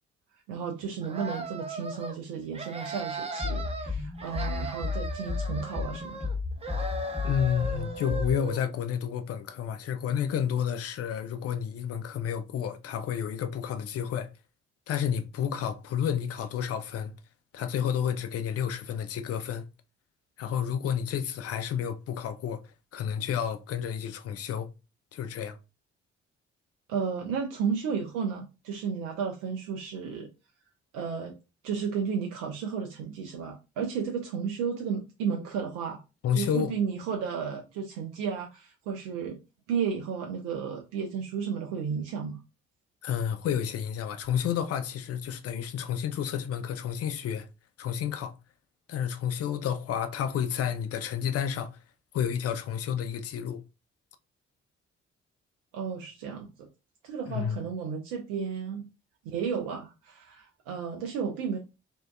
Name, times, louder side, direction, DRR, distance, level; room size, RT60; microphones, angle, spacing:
voice 1, 0.5-6.3 26.9-30.3 30.9-31.4 31.6-36.0 36.3-39.4 39.7-42.4 55.7-56.7 57.0-58.9 59.2-61.6, right 6 dB, 70° right, 0.5 m, -33 dB
sound 1, 1.0-2.2 2.5-3.9 4.2-6.3 6.6-8.6, right 2 dB, 20° right, 0.6 m, -37 dB
sound 2, 3.4-8.4, left 4 dB, 5° left, 1.0 m, -33 dB
voice 2, 7.2-14.3 14.9-17.1 17.5-19.6 20.4-22.6 22.9-24.7 25.1-25.6 36.2-36.7 43.0-47.5 47.8-48.3 48.9-51.8 52.1-53.6 57.3-57.6, left 8 dB, 45° left, 0.5 m, -30 dB
2.5 x 2.2 x 2.2 m
figure-of-eight pair, 40°, 32 cm